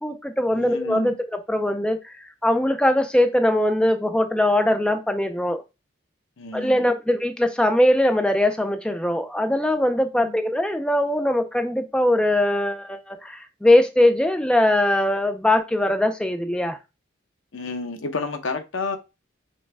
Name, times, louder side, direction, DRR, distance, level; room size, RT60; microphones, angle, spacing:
voice 1, 0.0-2.0 2.4-5.6 6.5-16.8, left 1 dB, 5° left, 0.4 m, -21 dB
voice 2, 0.5-1.2 6.4-6.9 10.2-10.4 17.5-19.0, left 3 dB, 80° left, 0.8 m, -30 dB
6.3 x 2.2 x 3.3 m
head